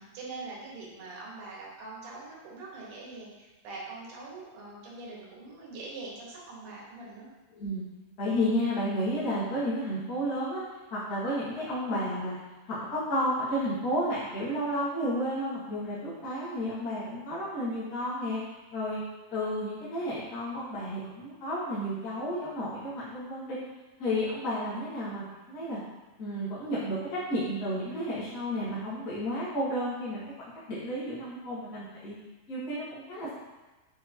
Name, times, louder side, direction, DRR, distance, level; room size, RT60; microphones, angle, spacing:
voice 1, 0.1-7.3, right 3 dB, 80° right, -5 dB, 3.4 m, -43 dB
voice 2, 7.5-7.8 8.2-10.6 10.9-12.4 12.7-18.4 18.7-19.0 19.3-23.6 24.0-25.8 26.2-30.2 30.7-32.1 32.5-33.3, equal, 35° left, -11 dB, 1.6 m, -32 dB
7.5 x 4.6 x 2.9 m, 1.2 s
omnidirectional pair, 4.4 m